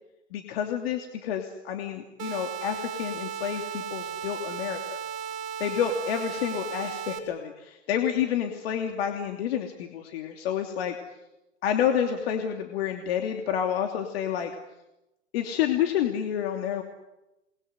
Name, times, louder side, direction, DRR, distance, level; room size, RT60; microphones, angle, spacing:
voice 1, 0.3-5.0 5.6-11.0 11.6-14.5 15.3-16.8, left 9 dB, 55° left, 3 dB, 3.0 m, -29 dB
sound 1, 2.2-7.2, right 8 dB, 45° right, 6.7 m, -35 dB
28.5 x 22.0 x 8.1 m, 0.95 s
hypercardioid pair, 140°, 36 cm